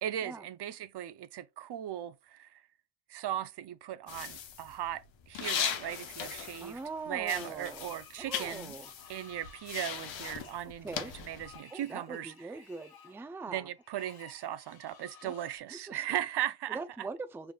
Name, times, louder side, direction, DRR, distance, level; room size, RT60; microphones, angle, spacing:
voice 1, 0.0-2.6 3.1-6.8 7.1-8.7 9.1-12.5 13.5-17.1, right 11 dB, 65° right, 0.5 m, -38 dB
sound 1, 4.1-7.0 7.2-11.6, left 8 dB, 80° left, 0.8 m, -38 dB
voice 2, 6.6-7.9 8.2-8.9 10.8-11.1 11.7-13.7 15.2-15.3 15.9-16.0 16.7-17.5, right 3 dB, 5° right, 0.3 m, -42 dB
Screech, 7.7-15.6, left 6 dB, 55° left, 1.1 m, -56 dB
4.9 x 3.4 x 2.3 m
cardioid pair, 80°, 45 cm